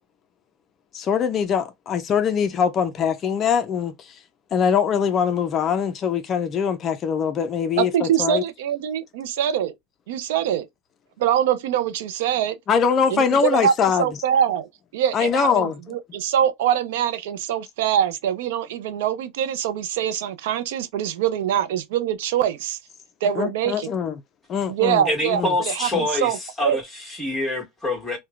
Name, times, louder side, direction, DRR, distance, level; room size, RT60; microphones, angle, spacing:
voice 1, 0.9-4.2 4.5-8.4 12.7-14.1 15.1-15.8 23.4-24.1 24.5-25.0 25.3-25.5 25.9-26.0, left 7 dB, 35° left, 0.4 m, -22 dB
voice 2, 7.8-9.7 10.1-10.7 11.2-12.6 13.1-14.7 14.9-22.8 23.2-23.9 24.7-26.8, right 9 dB, 85° right, 0.4 m, -24 dB
voice 3, 25.1-28.2, left 2 dB, 10° left, 1.3 m, -26 dB
3.1 x 2.1 x 2.3 m
supercardioid pair, 125°, 0 cm